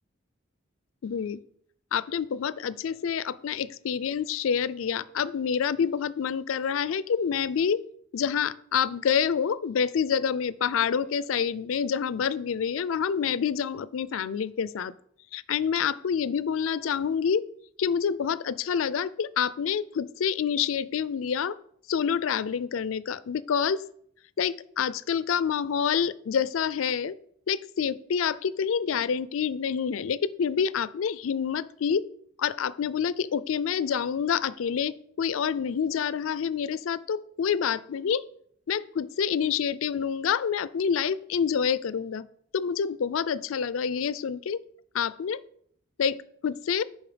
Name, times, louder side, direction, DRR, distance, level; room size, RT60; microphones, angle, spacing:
voice 1, 1.0-1.4 1.9-7.8 8.1-14.9 15.3-17.4 17.8-21.6 21.9-23.8 24.4-27.2 27.5-32.0 32.4-38.3 38.7-42.3 42.5-44.6 44.9-45.4 46.0-46.2 46.4-46.8, left 7 dB, 85° left, 18 dB, 0.4 m, -27 dB
7.1 x 5.3 x 5.0 m, 0.65 s
head